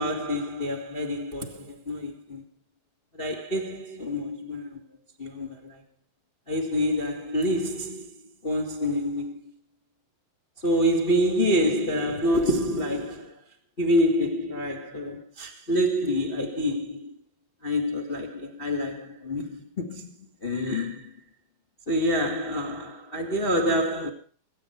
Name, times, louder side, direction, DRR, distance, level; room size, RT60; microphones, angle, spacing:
voice 1, 0.0-2.4 3.1-4.8 5.2-5.8 6.5-8.1 8.4-9.4 10.6-13.3 13.8-17.1 17.6-21.1 21.9-24.1, equal, 30° left, 0.9 m, -27 dB
23.0 x 9.2 x 4.4 m
omnidirectional pair, 4.6 m